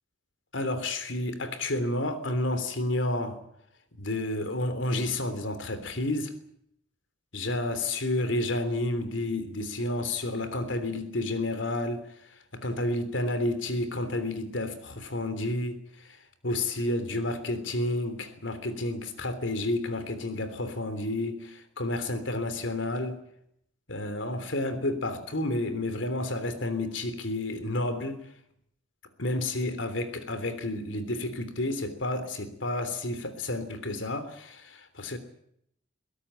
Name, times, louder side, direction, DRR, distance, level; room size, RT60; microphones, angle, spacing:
voice 1, 0.5-3.4 4.0-6.3 7.3-23.2 23.9-28.3 29.2-35.2, left 1 dB, 75° left, 3.3 m, -30 dB
22.5 x 17.5 x 8.9 m
head